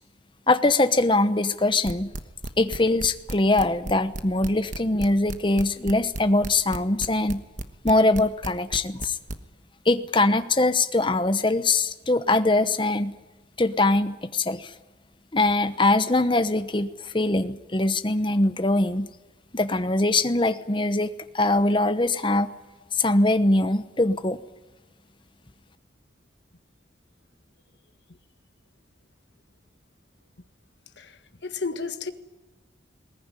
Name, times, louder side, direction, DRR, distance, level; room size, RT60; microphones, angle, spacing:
voice 1, 0.5-2.1 2.6-7.4 7.8-9.2 9.9-13.1 13.6-14.7 15.3-19.1 19.5-21.1 21.3-22.5 22.9-24.4, left 2 dB, 25° left, 1.0 m, -22 dB
sound 1, 1.8-9.4, right 1 dB, 40° right, 1.3 m, -33 dB
voice 2, 31.4-32.1, left 4 dB, 70° left, 1.6 m, -31 dB
20.5 x 19.0 x 9.8 m
head